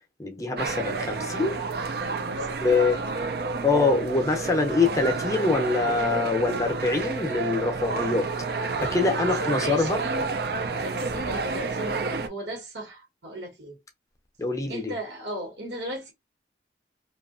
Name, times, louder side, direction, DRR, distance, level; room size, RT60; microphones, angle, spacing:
voice 1, 0.2-1.6 2.6-3.0 3.6-8.3 8.8-10.0 14.4-14.9, left 3 dB, 20° left, 0.6 m, -24 dB
sound 1, 0.6-12.3, right 4 dB, 55° right, 0.4 m, -30 dB
voice 2, 1.9-3.0 8.8-10.3 10.7-13.8 14.7-16.1, right 1 dB, 80° right, 1.3 m, -36 dB
2.7 x 2.4 x 2.5 m
head